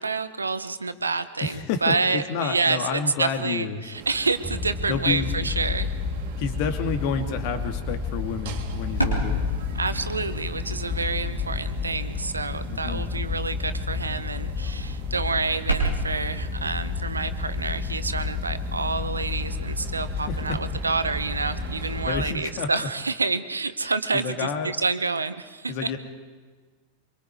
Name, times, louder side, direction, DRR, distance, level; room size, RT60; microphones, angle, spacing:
voice 1, 0.0-5.9 9.8-25.9, right 4 dB, 80° right, 13 dB, 1.0 m, -28 dB
voice 2, 1.4-3.8 4.9-5.3 6.4-9.4 12.7-13.1 20.3-20.6 22.1-22.9 24.1-24.7 25.7-26.0, left 5 dB, 45° left, 6 dB, 2.3 m, -29 dB
sound 1, 3.9-22.2, right 6 dB, 55° right, 2.3 m, -42 dB
sound 2, 4.4-22.3, left 5 dB, 10° left, 1.7 m, -31 dB
sound 3, 8.7-18.9, right 1 dB, 90° left, 3.7 m, -34 dB
25.0 x 24.0 x 4.8 m, 1.4 s
figure-of-eight pair, 90°, 0 cm